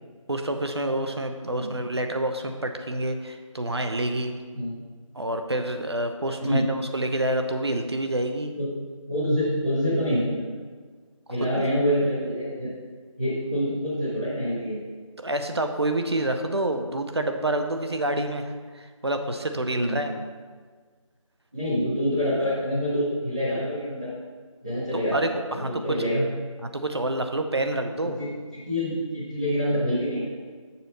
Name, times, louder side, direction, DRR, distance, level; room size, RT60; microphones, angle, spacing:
voice 1, 0.3-4.3 5.1-8.6 11.4-11.5 15.2-18.5 18.7-20.1 24.9-25.7 26.6-28.2, right 1 dB, 50° right, 6 dB, 0.6 m, -28 dB
voice 2, 9.1-10.5 11.3-12.7 13.2-14.8 19.8-20.0 21.5-24.1 24.6-25.2 25.5-26.2 28.2-28.3 28.6-30.3, equal, 15° right, -14 dB, 0.9 m, -26 dB
6.8 x 4.0 x 6.2 m, 1.5 s
figure-of-eight pair, 170°, 17 cm